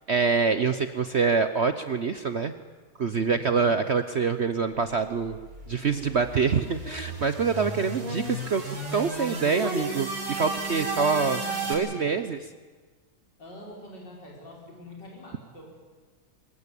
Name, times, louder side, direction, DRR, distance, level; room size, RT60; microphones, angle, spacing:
voice 1, 0.1-2.5 3.0-5.4 5.7-11.4 11.7-12.4, right 5 dB, 55° right, 10 dB, 0.7 m, -25 dB
voice 2, 3.1-3.8 10.8-12.4 13.4-15.8, left 1 dB, 60° left, -1 dB, 5.7 m, -45 dB
sound 1, 5.3-11.7, right 2 dB, 80° right, 6.1 m, -33 dB
22.5 x 21.0 x 8.5 m, 1.4 s
omnidirectional pair, 2.1 m